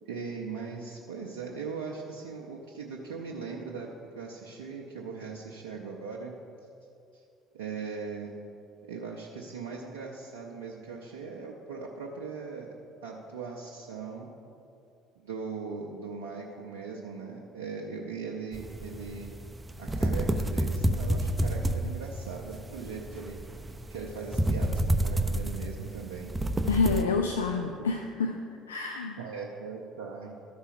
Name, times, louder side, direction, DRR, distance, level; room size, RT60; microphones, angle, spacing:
voice 1, 0.0-3.9 4.2-6.3 7.1-7.2 7.5-8.3 8.8-12.7 13.0-14.3 15.2-19.3 19.8-23.4 23.9-26.3 27.8-27.9 29.2-30.3, right 5 dB, 70° right, -2 dB, 0.6 m, -39 dB
sound 1, 18.5-27.0, right 1 dB, 15° right, 0.5 m, -29 dB
voice 2, 26.7-28.4 28.7-29.2, left 4 dB, 75° left, 4 dB, 0.3 m, -28 dB
13.0 x 4.5 x 5.1 m, 2.6 s
figure-of-eight pair, 55°, 0 cm